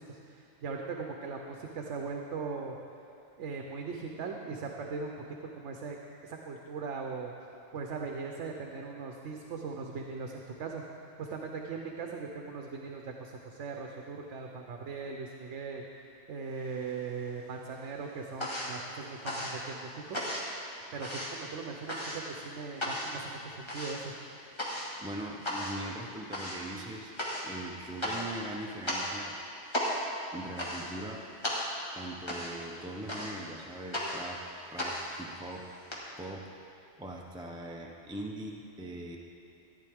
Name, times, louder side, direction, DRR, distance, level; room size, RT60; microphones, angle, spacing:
voice 1, 0.0-2.8 3.4-5.1 5.6-6.0 6.2-7.3 7.7-10.8 11.2-15.8 16.3-20.2 20.9-24.1, right 4 dB, 75° right, 2 dB, 1.0 m, -39 dB
sound 1, 16.6-17.4 17.7-36.0, equal, 25° left, 1.6 m, -36 dB
voice 2, 25.0-27.1 27.4-29.4 30.3-31.3 31.9-35.7 36.2-36.5 37.0-39.2, right 1 dB, 5° right, 0 dB, 0.4 m, -41 dB
14.0 x 9.8 x 3.5 m, 2.7 s
omnidirectional pair, 1.2 m